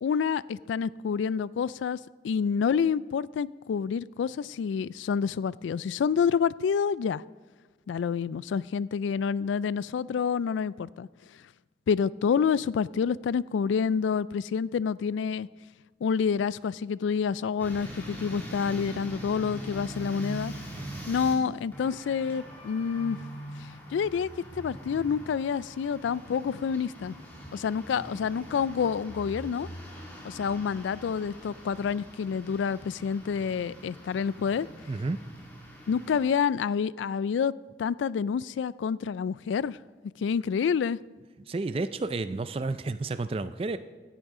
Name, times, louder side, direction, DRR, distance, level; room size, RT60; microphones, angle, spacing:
voice 1, 0.0-2.0 2.2-7.2 7.9-11.1 11.9-15.5 16.0-20.5 21.1-23.3 23.9-27.2 27.5-29.7 30.2-34.7 35.9-37.5 37.8-39.8 40.2-41.0, left 6 dB, 80° left, 20 dB, 0.3 m, -28 dB
sound 1, 17.6-21.3 21.7-36.3, equal, 10° left, 2.3 m, -43 dB
voice 2, 20.7-21.1 34.9-35.2 41.5-43.8, right 3 dB, 30° right, 12 dB, 0.4 m, -31 dB
17.0 x 10.0 x 3.7 m, 1.3 s
head